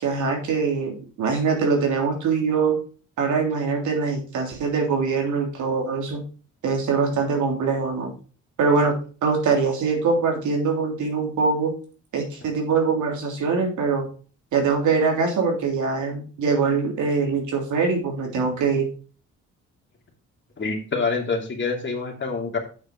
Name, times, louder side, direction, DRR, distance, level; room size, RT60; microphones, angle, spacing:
voice 1, 0.0-2.8 3.2-6.2 6.6-8.1 8.6-11.7 12.1-14.1 14.5-18.9, right 4 dB, 75° right, 2 dB, 3.2 m, -23 dB
voice 2, 20.6-22.6, left 4 dB, 40° left, 2 dB, 2.8 m, -26 dB
8.0 x 6.5 x 4.5 m, 0.38 s
cardioid pair, 90°, 30 cm